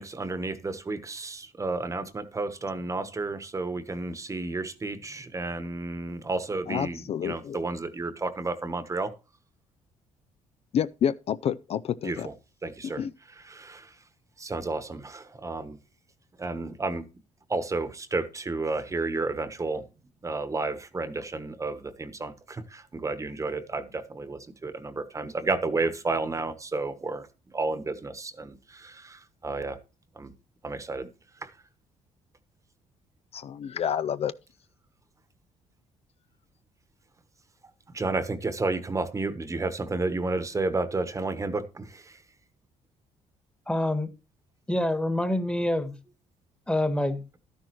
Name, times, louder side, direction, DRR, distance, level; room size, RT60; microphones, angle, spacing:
voice 1, 0.0-9.1 12.0-12.3 12.6-13.0 13.3-13.9 14.4-15.8 16.4-17.0 17.5-19.9 20.2-27.3 27.5-29.8 30.2-30.3 30.6-31.1 31.4-31.5 37.9-42.2, right 3 dB, 25° right, 1.1 m, -31 dB
voice 2, 6.7-7.6 10.7-12.3 12.8-13.1 33.3-34.3, left 8 dB, 50° left, 0.5 m, -29 dB
voice 3, 43.7-44.1 44.7-45.9 46.7-47.2, left 1 dB, 10° left, 1.4 m, -26 dB
11.5 x 10.5 x 3.1 m
cardioid pair, 95°, 13 cm